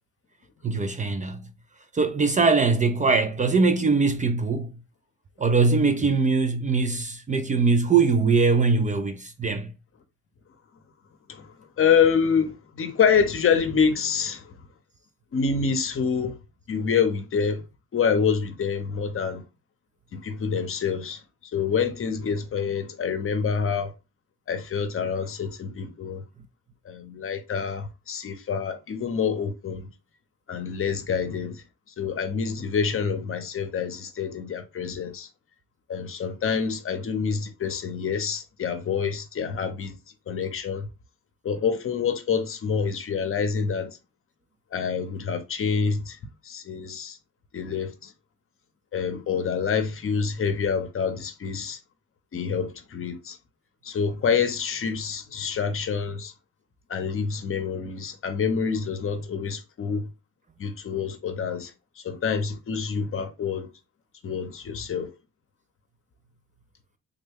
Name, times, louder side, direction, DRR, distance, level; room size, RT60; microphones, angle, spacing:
voice 1, 0.6-1.5 1.9-4.7 5.4-9.7, right 4 dB, 25° right, 0.4 m, -22 dB
voice 2, 11.8-14.4 15.3-16.3 16.7-17.6 17.9-19.4 20.1-21.2 21.5-23.9 24.5-26.2 26.9-29.9 30.5-31.6 32.0-35.3 35.9-40.0 40.3-40.9 41.4-44.0 44.7-46.2 46.5-47.2 47.5-48.1 48.9-51.8 52.3-53.4 53.8-56.3 56.9-60.0 60.6-61.7 62.0-63.7 64.2-65.1, left 6 dB, 45° left, 0.7 m, -26 dB
3.6 x 2.2 x 3.4 m
cardioid pair, 90°, 30 cm